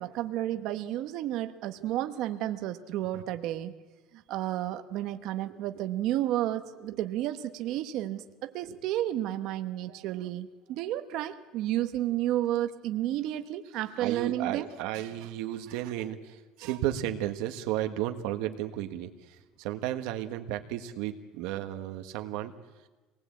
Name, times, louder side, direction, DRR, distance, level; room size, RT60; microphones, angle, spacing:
voice 1, 0.0-3.7 4.3-14.7, right 13 dB, 50° right, 8 dB, 1.1 m, -31 dB
voice 2, 5.4-5.9 8.6-8.8 9.9-10.0 14.0-22.5, right 13 dB, 70° right, 6 dB, 1.5 m, -34 dB
27.0 x 19.5 x 8.6 m, 1.2 s
cardioid pair, 175°, 0 cm